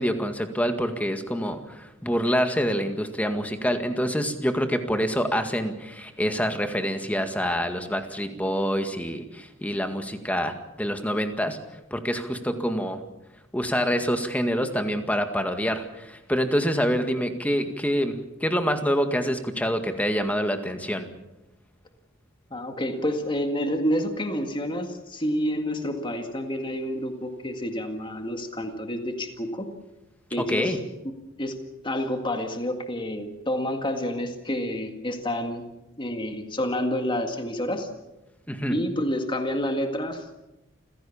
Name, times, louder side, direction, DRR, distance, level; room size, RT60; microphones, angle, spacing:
voice 1, 0.0-11.6 11.9-13.0 13.5-18.2 18.4-21.1 30.4-30.8 38.5-38.8, equal, 10° left, 7 dB, 1.9 m, -26 dB
voice 2, 22.5-29.7 30.3-30.8 31.4-31.6 31.8-35.6 36.0-37.9 38.7-40.2, equal, 25° left, 5 dB, 1.9 m, -28 dB
28.0 x 16.5 x 7.2 m, 0.97 s
head